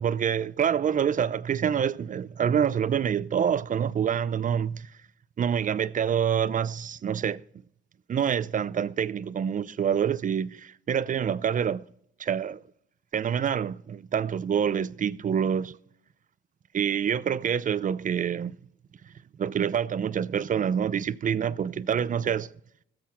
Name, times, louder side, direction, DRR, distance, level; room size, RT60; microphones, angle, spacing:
voice 1, 0.0-4.9 5.4-7.4 8.1-11.9 12.2-12.6 13.1-15.8 16.7-18.5 19.4-22.5, right 8 dB, 40° right, 0.6 m, -26 dB
21.0 x 7.9 x 3.6 m
cardioid pair, 90°, 20 cm